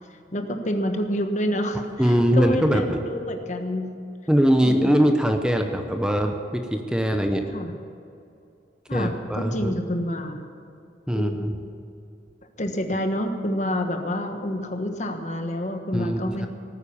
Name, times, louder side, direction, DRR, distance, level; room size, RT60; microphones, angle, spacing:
voice 1, 0.3-3.9 4.6-4.9 7.5-7.7 8.9-10.4 11.1-11.6 12.6-16.5, left 1 dB, 45° left, 5 dB, 1.3 m, -28 dB
voice 2, 2.0-3.0 4.3-7.4 8.9-9.7 11.1-11.6 15.9-16.5, equal, 5° right, 5 dB, 0.8 m, -22 dB
18.0 x 9.6 x 7.2 m, 2.7 s
head